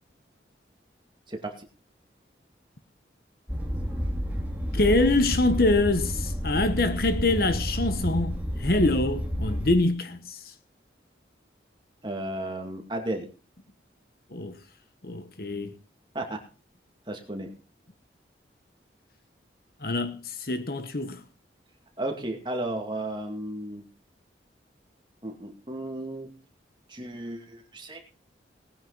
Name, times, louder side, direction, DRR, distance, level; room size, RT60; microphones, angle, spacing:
sound 1, 3.5-9.7, equal, 10° right, 2.3 m, -30 dB
voice 1, 4.7-10.4 14.3-14.5 15.0-15.7 19.8-21.2, left 2 dB, 55° left, 1.2 m, -25 dB
voice 2, 12.0-13.3 16.1-16.4 17.1-17.5 22.0-23.8 25.2-26.3 26.9-28.0, right 1 dB, 25° right, 2.3 m, -34 dB
18.5 x 9.5 x 4.0 m
head